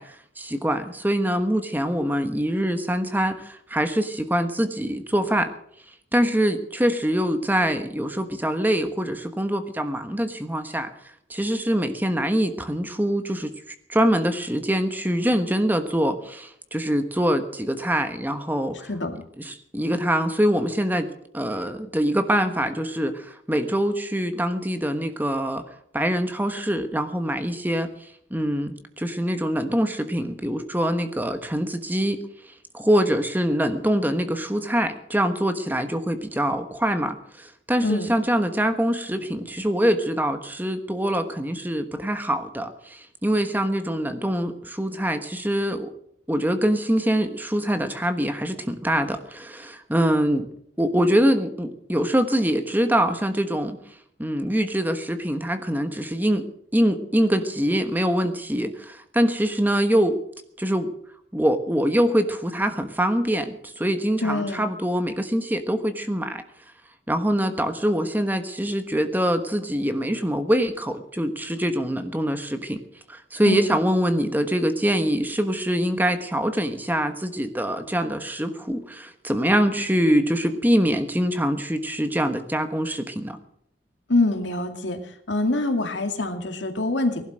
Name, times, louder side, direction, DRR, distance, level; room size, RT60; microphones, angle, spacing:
voice 1, 0.0-5.5 6.1-10.9 11.3-18.9 19.4-25.6 25.9-27.9 28.3-32.2 32.7-45.9 46.3-50.5 50.8-53.8 54.2-56.4 56.7-60.2 60.6-60.9 61.3-66.4 67.1-72.8 73.1-83.4, equal, 10° right, 8 dB, 1.2 m, -24 dB
voice 2, 64.2-64.7 73.5-73.8 84.1-85.0 85.3-87.2, left 2 dB, 80° left, 6 dB, 2.3 m, -24 dB
18.5 x 12.0 x 6.3 m, 0.68 s
head